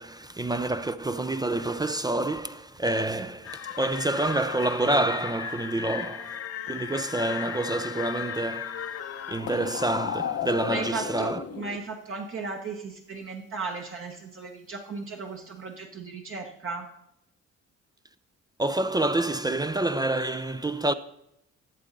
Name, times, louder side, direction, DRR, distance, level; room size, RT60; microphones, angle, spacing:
voice 1, 0.0-9.0 9.3-11.4 18.6-20.9, right 2 dB, 15° right, 0.4 m, -28 dB
sound 1, 3.4-11.8, left 9 dB, 55° left, 0.7 m, -35 dB
voice 2, 10.7-17.0, right 4 dB, 45° right, 1.1 m, -36 dB
12.0 x 7.2 x 3.9 m
cardioid pair, 80°, 30 cm